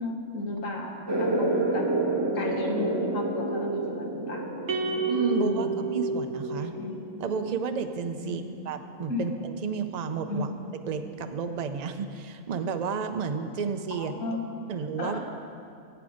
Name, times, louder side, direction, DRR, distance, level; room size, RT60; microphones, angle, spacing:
voice 1, 0.0-1.9 2.3-4.5 5.3-5.8 6.6-6.9 8.2-8.6 9.1-9.3 10.3-10.5 13.9-14.7 15.0-15.2, left 2 dB, 70° left, 1 dB, 1.6 m, -34 dB
sound 1, 1.1-8.2, right 2 dB, 20° right, 1.0 m, -30 dB
sound 2, 4.7-7.2, right 3 dB, 75° right, 1.2 m, -30 dB
voice 2, 5.1-6.8 7.2-10.5 10.9-14.1 14.7-15.2, right 5 dB, 50° right, 7 dB, 0.5 m, -31 dB
14.0 x 8.1 x 5.0 m, 2.4 s
omnidirectional pair, 1.4 m